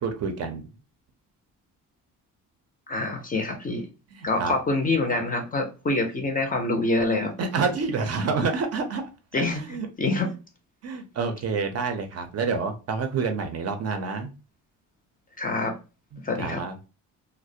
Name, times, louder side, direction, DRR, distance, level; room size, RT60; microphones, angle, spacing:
voice 1, 0.0-0.7 4.1-4.5 7.1-9.0 9.3-9.9 10.2-10.3 10.8-14.3 16.1-16.9, right 4 dB, 50° right, 6 dB, 0.5 m, -28 dB
voice 2, 2.9-3.8 4.2-7.4 9.3-10.3 15.4-15.7 16.2-16.6, left 2 dB, 25° left, 4 dB, 0.4 m, -26 dB
2.3 x 2.0 x 2.6 m, 0.32 s
cardioid pair, 125°, 34 cm